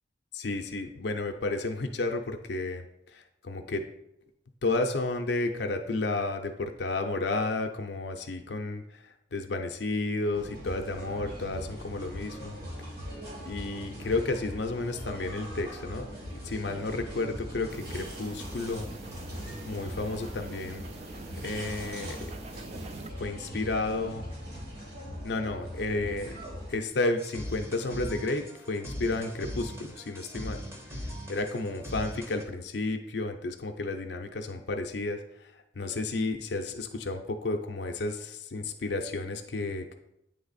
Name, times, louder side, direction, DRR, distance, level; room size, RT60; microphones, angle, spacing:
voice 1, 0.3-3.8 4.6-12.6 13.4-18.9 19.6-20.8 21.4-22.3 23.2-24.2 25.2-26.4 26.7-30.6 31.0-40.0, left 2 dB, 60° left, 5 dB, 0.5 m, -32 dB
sound 1, 10.3-26.7, equal, 55° right, 2.3 m, -41 dB
sound 2, 17.7-23.1, right 3 dB, 35° right, 0.3 m, -45 dB
sound 3, 27.2-32.4, equal, 15° right, 0.8 m, -40 dB
8.6 x 3.4 x 4.0 m, 0.83 s
head